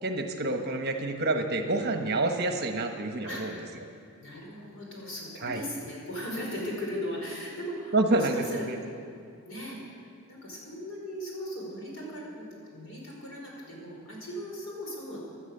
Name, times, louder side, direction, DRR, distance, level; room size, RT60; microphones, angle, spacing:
voice 1, 0.0-3.5 5.4-5.6 7.9-8.8, right 2 dB, 45° right, 5 dB, 1.2 m, -28 dB
voice 2, 4.2-9.0 9.4-15.2, equal, 60° left, -3 dB, 4.9 m, -38 dB
17.5 x 11.0 x 6.8 m, 2.4 s
head